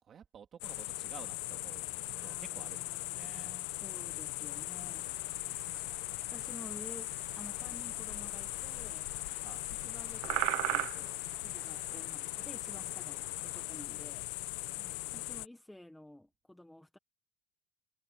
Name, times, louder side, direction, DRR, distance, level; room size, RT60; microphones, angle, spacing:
voice 1, 0.0-3.6 5.4-6.0 9.4-9.7 14.7-15.3, right 8 dB, 25° right, 2.9 m, -54 dB
sound 1, 0.6-15.5, left 22 dB, 80° left, 0.6 m, -39 dB
voice 2, 2.1-5.1 6.3-7.1 7.4-9.1 9.8-14.3 15.1-17.0, left 1 dB, 5° left, 1.0 m, -52 dB
sound 2, 4.5-13.6, right 22 dB, 65° right, 0.6 m, -42 dB
cardioid pair, 180°, 0 cm